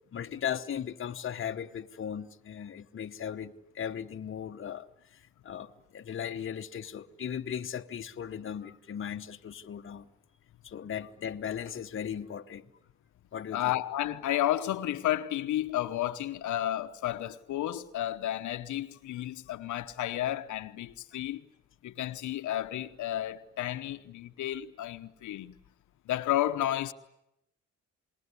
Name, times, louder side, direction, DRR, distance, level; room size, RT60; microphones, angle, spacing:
voice 1, 0.1-10.1 10.6-12.7 13.3-13.7 21.1-21.2, left 8 dB, 45° left, 1.1 m, -37 dB
voice 2, 13.5-21.4 21.8-25.6 26.1-26.9, left 13 dB, 75° left, 1.0 m, -32 dB
28.0 x 20.5 x 9.8 m
cardioid pair, 90°, 30 cm